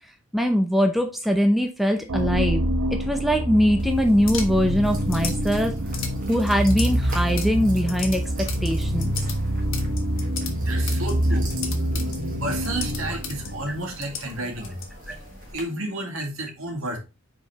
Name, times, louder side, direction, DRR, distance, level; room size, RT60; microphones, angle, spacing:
voice 1, 0.3-2.6 2.9-5.7 6.3-9.1 15.1-15.2, equal, ahead, 4 dB, 0.6 m, -22 dB
sound 1, 2.1-14.0, equal, 85° right, 1.1 m, -26 dB
sound 2, 3.8-15.5, left 6 dB, 60° left, 1.4 m, -38 dB
sound 3, 4.8-15.6, right 2 dB, 40° right, 1.5 m, -42 dB
voice 2, 10.5-11.5 12.4-14.8 15.5-17.0, right 1 dB, 70° right, 1 dB, 2.2 m, -31 dB
5.1 x 4.5 x 4.7 m, 0.29 s
head